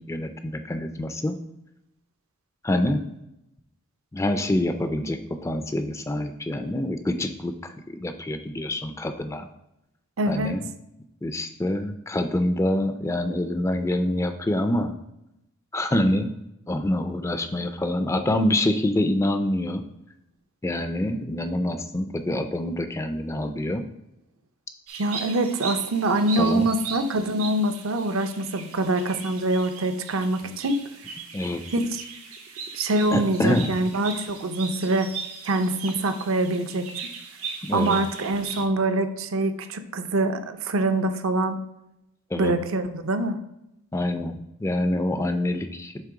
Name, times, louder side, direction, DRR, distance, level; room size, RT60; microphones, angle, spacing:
voice 1, 0.0-1.4 2.6-3.0 4.1-9.5 10.3-10.7 11.2-14.9 15.7-16.3 16.7-19.9 20.6-23.8 26.4-26.7 30.4-30.6 31.3-31.6 33.1-33.7 37.6-38.0 42.3-42.5 43.9-45.9, left 1 dB, 15° left, 8 dB, 0.3 m, -26 dB
voice 2, 10.2-10.6 25.0-30.8 31.7-32.0 32.7-35.1 35.4-36.9 37.7-41.6 42.4-43.4, right 2 dB, 65° right, 8 dB, 0.6 m, -24 dB
sound 1, 24.9-38.7, right 6 dB, 85° right, 0.9 m, -39 dB
7.5 x 3.0 x 4.7 m, 0.86 s
head